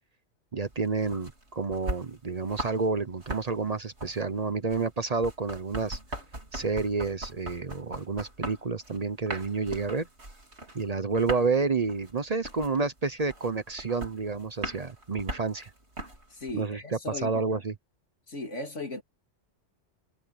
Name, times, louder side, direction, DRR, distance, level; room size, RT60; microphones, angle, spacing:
voice 1, 0.5-6.0 6.5-10.1 10.7-15.7 16.5-17.7, right 4 dB, 40° right, 0.8 m, -29 dB
sound 1, 0.6-2.9 3.1-16.5, right 1 dB, 65° right, 4.8 m, -40 dB
voice 2, 16.3-17.6 18.3-19.0, left 2 dB, 90° left, 3.5 m, -37 dB
omnidirectional pair, 1.2 m